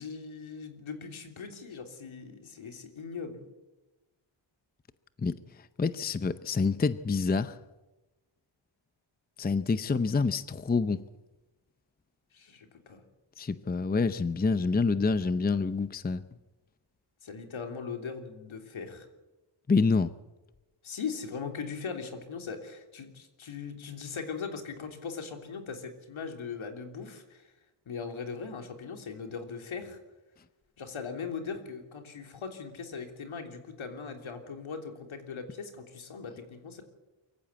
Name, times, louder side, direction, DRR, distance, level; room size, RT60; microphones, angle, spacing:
voice 1, 0.0-3.4 12.3-13.0 17.2-19.1 20.8-27.5 27.8-30.0 30.8-36.8, left 5 dB, 70° left, 5 dB, 3.3 m, -39 dB
voice 2, 5.8-7.6 9.4-11.0 13.4-16.2 19.7-20.1, left 4 dB, 20° left, 13 dB, 0.6 m, -27 dB
23.5 x 15.0 x 8.4 m, 1.1 s
wide cardioid pair, 100°, 50 cm